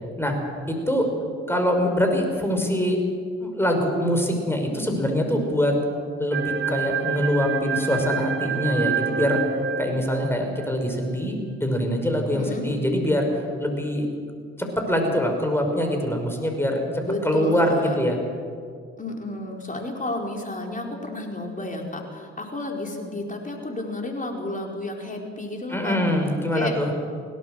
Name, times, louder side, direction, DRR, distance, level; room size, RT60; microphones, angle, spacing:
voice 1, 0.7-1.1 1.5-3.0 3.4-5.8 6.2-9.4 9.8-13.3 13.6-14.1 14.6-18.2 25.7-26.9, equal, 5° left, 3 dB, 5.8 m, -24 dB
sound 1, 6.3-10.8, right 6 dB, 35° right, 2.0 m, -28 dB
voice 2, 12.3-12.7 17.0-18.0 19.0-26.0 26.5-27.0, left 1 dB, 25° left, 2 dB, 4.5 m, -31 dB
22.0 x 18.0 x 6.7 m, 2.2 s
hypercardioid pair, 45°, 34 cm